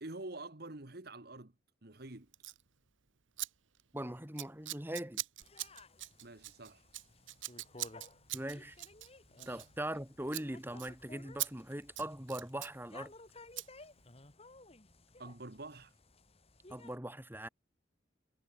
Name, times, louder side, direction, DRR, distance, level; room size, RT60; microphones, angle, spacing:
voice 1, 0.0-1.5 1.8-2.3 6.2-6.9 9.4-9.6 15.2-15.9, right 2 dB, 55° right, 1.7 m, -47 dB
Scissors, 2.3-2.6 3.4-3.5 3.7-4.0 4.4-10.0 10.3-10.5 10.8-10.9 11.4-11.5 11.8-12.7 13.6-13.7, right 16 dB, 80° right, 1.6 m, -42 dB
voice 2, 3.9-5.2 8.3-8.8 9.5-13.1 16.7-17.5, right 1 dB, 10° right, 2.9 m, -41 dB
sound 1, 5.4-17.0, left 2 dB, 30° left, 2.0 m, -57 dB
head